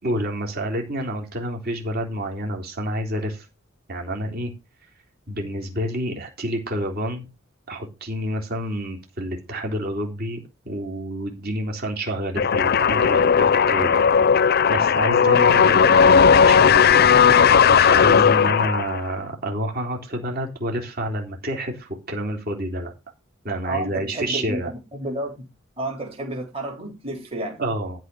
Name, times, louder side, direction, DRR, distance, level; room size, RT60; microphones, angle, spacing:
voice 1, 0.0-3.5 3.9-4.5 5.3-7.3 7.7-10.4 10.7-14.1 14.7-17.1 17.7-22.9 23.4-24.7 27.6-28.0, right 1 dB, 45° right, 3.7 m, -28 dB
sound 1, 12.4-19.1, left 7 dB, 45° left, 0.5 m, -16 dB
voice 2, 23.7-25.4 25.8-27.6, right 1 dB, 30° right, 3.9 m, -31 dB
13.5 x 4.6 x 7.1 m
head